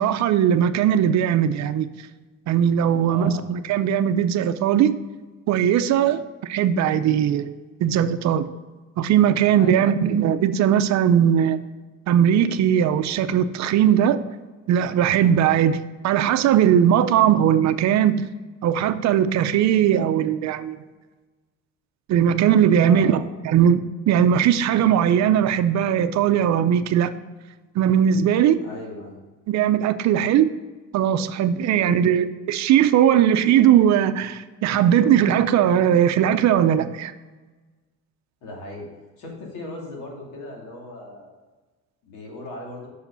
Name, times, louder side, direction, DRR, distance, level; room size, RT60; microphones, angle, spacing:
voice 1, 0.0-1.9 2.5-4.9 5.5-7.5 7.8-8.4 9.0-11.6 12.1-14.2 14.7-15.8 16.0-18.2 18.6-20.8 22.1-23.8 24.1-27.1 27.7-28.6 29.5-30.5 30.9-37.1, right 9 dB, 60° right, 0.6 m, -19 dB
voice 2, 3.0-3.4 9.6-9.9 22.8-23.3 28.6-29.2 31.8-32.1 38.4-38.9 39.2-41.3 42.0-42.9, left 1 dB, 85° left, 2.6 m, -37 dB
6.5 x 5.0 x 6.7 m
cardioid pair, 135°, 32 cm